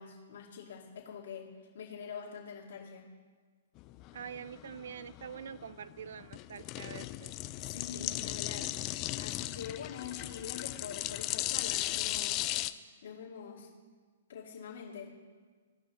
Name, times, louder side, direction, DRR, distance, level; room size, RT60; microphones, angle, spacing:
voice 1, 0.0-1.5 1.7-3.1 7.6-8.8 9.2-12.5 13.0-13.7 14.3-15.1, left 7 dB, 65° left, -4 dB, 2.5 m, -44 dB
sound 1, 3.8-12.7, left 16 dB, 35° left, 0.4 m, -37 dB
voice 2, 4.1-7.3, right 8 dB, 70° right, 17 dB, 0.3 m, -45 dB
16.5 x 5.6 x 2.9 m, 1.5 s
hypercardioid pair, 130°, 0 cm